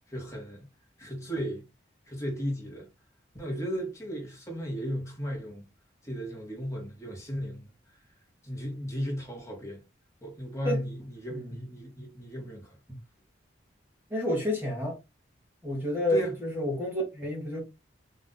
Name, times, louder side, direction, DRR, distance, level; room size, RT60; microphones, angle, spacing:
voice 1, 0.1-0.7 1.0-1.6 2.1-2.9 3.3-5.6 6.0-7.7 8.4-9.8 10.2-12.8 16.1-16.3, equal, 15° left, 1.0 m, -35 dB
voice 2, 11.3-11.7 12.9-13.0 14.1-15.0 15.6-17.6, left 1 dB, 10° right, 0.9 m, -30 dB
3.8 x 2.4 x 2.2 m
head